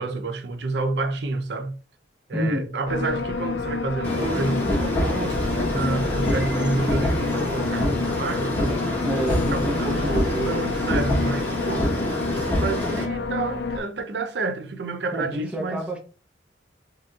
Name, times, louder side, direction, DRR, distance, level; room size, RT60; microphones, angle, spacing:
voice 1, 0.0-1.8 2.3-8.9 9.5-11.9 12.3-15.8, right 3 dB, 70° right, 0.6 m, -29 dB
voice 2, 2.3-2.6 9.0-10.5 15.1-16.0, right 1 dB, 5° right, 0.8 m, -28 dB
sound 1, 2.9-13.8, left 4 dB, 70° left, 0.5 m, -29 dB
sound 2, 4.0-13.0, left 1 dB, 10° left, 1.1 m, -26 dB
sound 3, 4.0-8.1 9.3-12.1, equal, 30° right, 1.6 m, -36 dB
4.8 x 3.0 x 2.4 m
head